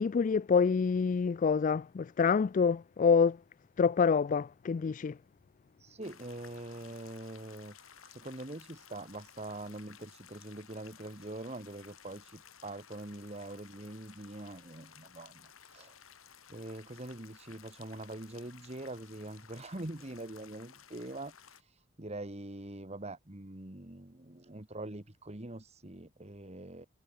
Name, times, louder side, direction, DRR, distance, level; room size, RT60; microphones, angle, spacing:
voice 1, 0.0-3.4 3.8-5.2, left 5 dB, 35° left, 0.3 m, -27 dB
voice 2, 5.8-16.2 16.5-26.9, right 2 dB, 30° right, 1.8 m, -44 dB
sound 1, 6.0-21.6, left 8 dB, 80° left, 4.0 m, -57 dB
head